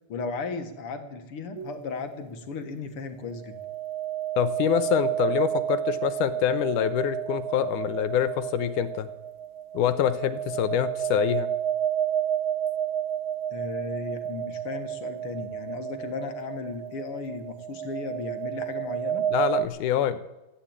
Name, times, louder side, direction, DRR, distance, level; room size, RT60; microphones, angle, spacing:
voice 1, 0.1-3.6 13.5-19.3, left 4 dB, 55° left, 8 dB, 1.9 m, -35 dB
sound 1, 1.5-1.8 3.3-19.7, right 10 dB, 70° right, 1.2 m, -31 dB
voice 2, 4.4-9.1 9.7-11.5 19.3-20.2, left 10 dB, 80° left, 12 dB, 2.4 m, -25 dB
14.5 x 10.0 x 8.7 m, 1.0 s
omnidirectional pair, 3.6 m